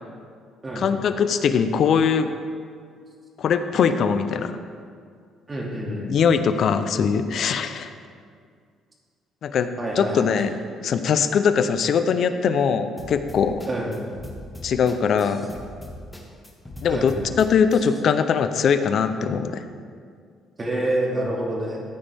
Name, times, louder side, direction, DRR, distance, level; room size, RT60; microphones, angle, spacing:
voice 1, 0.8-2.3 3.4-4.6 6.1-7.9 9.4-9.7 10.0-10.5 10.8-13.6 14.6-15.4 16.8-19.6, left 6 dB, 55° left, 10 dB, 0.6 m, -21 dB
voice 2, 5.5-6.1 9.8-10.3 13.7-13.9 16.9-17.1 20.6-21.8, right 1 dB, 25° right, -2 dB, 2.4 m, -27 dB
sound 1, 13.0-18.0, left 1 dB, 10° left, 1.7 m, -40 dB
14.5 x 9.0 x 3.5 m, 2.1 s
cardioid pair, 115°, 0 cm